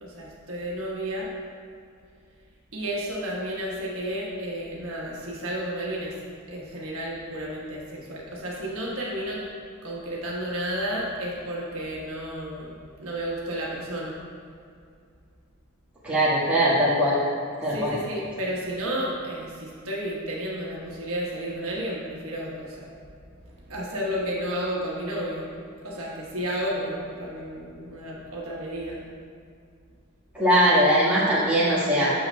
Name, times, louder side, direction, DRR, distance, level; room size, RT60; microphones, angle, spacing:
voice 1, 0.0-1.3 2.7-6.1 6.5-9.4 9.8-14.2 17.7-22.9 23.5-25.5 25.8-29.0, equal, 65° right, -5 dB, 1.2 m, -32 dB
voice 2, 16.0-17.2 17.6-18.0 30.3-32.1, equal, 5° right, -10 dB, 1.5 m, -21 dB
8.6 x 6.6 x 2.3 m, 2.3 s
head